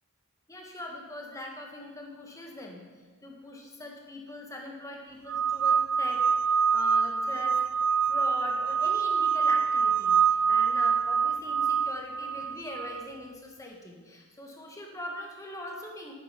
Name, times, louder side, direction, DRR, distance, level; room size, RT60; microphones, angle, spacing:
voice 1, 0.5-2.8 3.2-6.2 6.5-7.6 8.0-16.1, left 1 dB, 15° left, 0 dB, 1.9 m, -41 dB
sound 1, 5.3-13.1, right 6 dB, 85° right, 0.6 m, -25 dB
11.5 x 10.0 x 5.3 m, 1.4 s
head